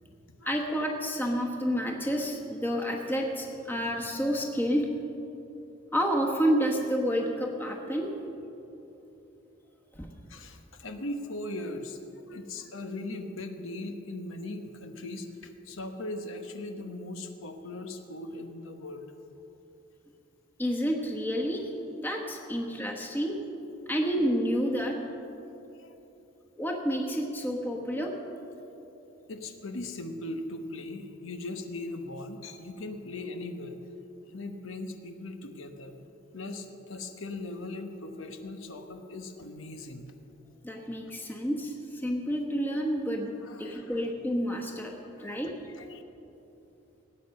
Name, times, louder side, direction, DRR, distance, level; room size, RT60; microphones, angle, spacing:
voice 1, 0.4-4.9 5.9-8.1 9.9-10.1 20.6-21.7 22.0-23.4 23.9-25.0 26.6-28.1 40.6-43.3 43.6-44.9 45.2-45.5, equal, 10° left, 0 dB, 1.1 m, -29 dB
voice 2, 10.3-12.0 12.3-19.0 22.6-22.7 25.7-25.9 29.3-33.8 34.3-36.0 36.3-40.1 43.4-44.0 45.2-45.4 45.8-46.0, left 2 dB, 85° left, 6 dB, 1.1 m, -39 dB
17.5 x 8.8 x 6.5 m, 3.0 s
head